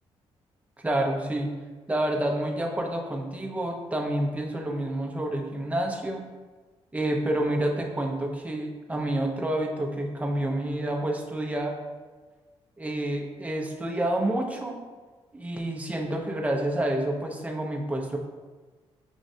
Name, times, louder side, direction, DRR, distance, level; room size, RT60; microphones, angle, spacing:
voice 1, 0.8-1.5 1.9-6.2 6.9-11.7 12.8-14.8 15.3-18.2, right 1 dB, 10° right, 0 dB, 0.8 m, -28 dB
6.0 x 3.0 x 2.7 m, 1.3 s
supercardioid pair, 60°, 12 cm